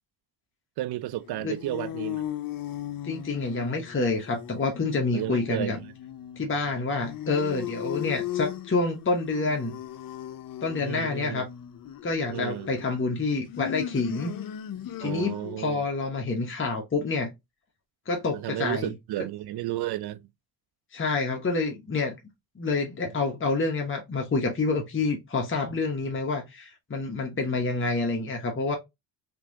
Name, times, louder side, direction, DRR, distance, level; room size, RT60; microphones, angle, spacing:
voice 1, 0.8-2.2 5.1-5.8 10.8-11.4 12.3-12.7 15.0-15.9 18.3-20.2, right 15 dB, 55° right, 0.5 m, -32 dB
sound 1, 1.2-15.7, left 11 dB, 45° left, 0.6 m, -37 dB
voice 2, 3.0-5.8 6.4-9.7 10.6-11.5 12.0-14.3 15.0-17.3 18.1-18.9 20.9-22.2 22.6-28.8, left 3 dB, 25° left, 1.1 m, -28 dB
3.5 x 3.0 x 2.8 m
supercardioid pair, 60°, 46 cm